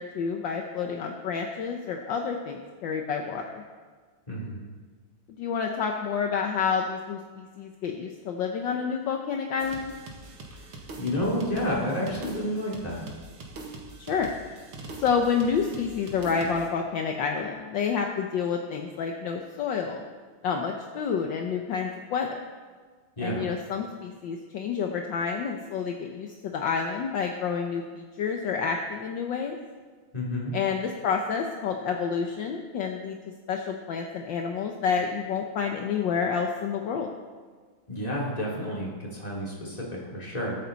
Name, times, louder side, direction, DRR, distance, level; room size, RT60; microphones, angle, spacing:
voice 1, 0.0-3.6 5.3-9.9 14.1-14.3 15.0-20.0 20.4-22.3 23.2-29.6 30.5-33.2 33.5-37.1, left 6 dB, 65° left, 3 dB, 1.5 m, -29 dB
voice 2, 4.3-4.6 10.5-10.7 11.0-13.0 23.2-23.5 30.1-30.5 37.9-40.5, equal, 15° left, -5 dB, 3.4 m, -30 dB
sound 1, 9.6-16.7, right 2 dB, 80° right, 2.5 m, -43 dB
21.0 x 9.0 x 4.1 m, 1.5 s
omnidirectional pair, 2.3 m